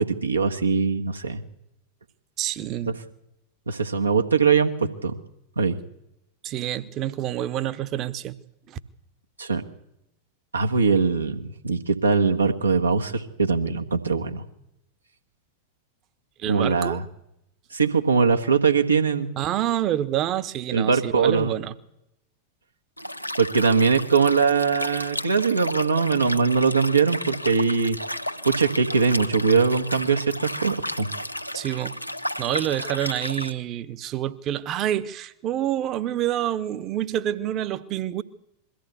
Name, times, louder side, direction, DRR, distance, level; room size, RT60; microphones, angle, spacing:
voice 1, 0.0-1.4 2.9-3.0 3.7-5.1 5.6-5.8 9.4-9.6 10.5-14.4 16.5-17.0 17.7-19.3 20.7-21.5 23.4-28.0 28.4-31.1, right 5 dB, 80° right, 1.5 m, -21 dB
voice 2, 2.4-3.0 6.4-8.3 8.7-8.8 16.4-17.0 19.4-21.7 31.5-32.0 32.4-38.2, right 12 dB, 35° right, 1.1 m, -27 dB
Liquid, 23.0-33.5, equal, 90° left, 0.9 m, -33 dB
22.0 x 15.0 x 8.2 m
figure-of-eight pair, 90°, 0 cm